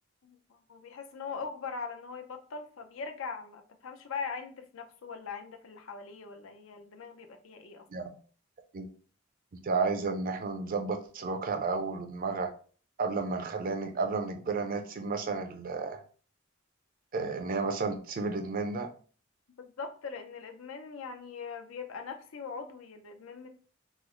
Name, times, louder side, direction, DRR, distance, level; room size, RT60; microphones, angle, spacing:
voice 1, 0.2-7.9 19.8-23.5, left 5 dB, 85° left, 6 dB, 0.5 m, -41 dB
voice 2, 9.6-12.5 13.0-16.0 17.1-18.9, right 4 dB, 45° right, 6 dB, 0.5 m, -32 dB
3.1 x 2.0 x 3.6 m, 0.41 s
head